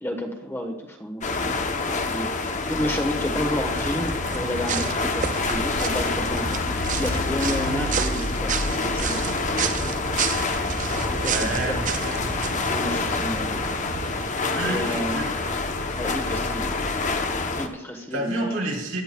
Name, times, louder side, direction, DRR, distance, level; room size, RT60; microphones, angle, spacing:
voice 1, 0.0-1.5 1.8-9.2 11.2-11.8 12.7-13.9 14.3-15.2 16.0-16.7 17.6-18.6, equal, 10° left, 2 dB, 1.2 m, -31 dB
sound 1, 1.2-17.7, left 3 dB, 40° left, 0.8 m, -27 dB
sound 2, 3.8-14.3, right 6 dB, 40° right, 0.5 m, -31 dB
sound 3, 6.0-10.0, left 2 dB, 85° left, 0.8 m, -34 dB
voice 2, 11.2-12.3 14.5-15.3 18.1-19.0, right 2 dB, 80° right, -1 dB, 2.6 m, -30 dB
16.5 x 10.0 x 2.3 m, 0.91 s
head